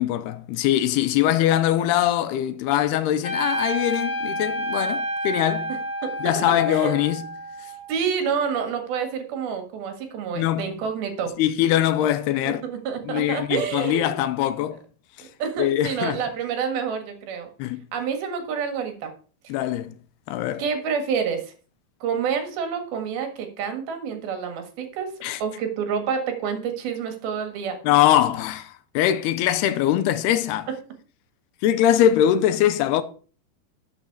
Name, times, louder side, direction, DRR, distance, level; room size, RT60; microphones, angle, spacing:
voice 1, 0.0-5.7 6.2-7.3 10.4-10.7 11.4-12.6 13.0-14.8 15.2-15.3 15.6-16.2 17.6-17.8 19.5-19.9 20.3-20.6 25.2-25.4 27.8-30.7 31.6-33.0, left 11 dB, 85° left, 2.7 m, -22 dB
Trumpet, 3.2-7.9, equal, 55° left, 1.0 m, -29 dB
voice 2, 7.9-11.3 12.5-14.2 15.4-17.5 17.9-19.1 20.6-21.4 22.0-25.1 25.4-27.8, right 6 dB, 70° right, 3.5 m, -28 dB
12.0 x 7.1 x 4.7 m
omnidirectional pair, 4.7 m